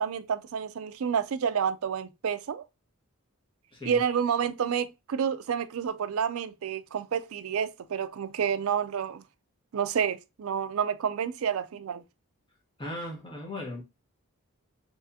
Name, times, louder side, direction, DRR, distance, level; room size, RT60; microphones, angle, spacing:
voice 1, 0.0-2.6 3.9-9.2 9.7-12.0, right 7 dB, 65° right, 0.4 m, -29 dB
voice 2, 12.8-13.8, left 1 dB, 20° left, 1.3 m, -37 dB
3.5 x 3.3 x 2.6 m
head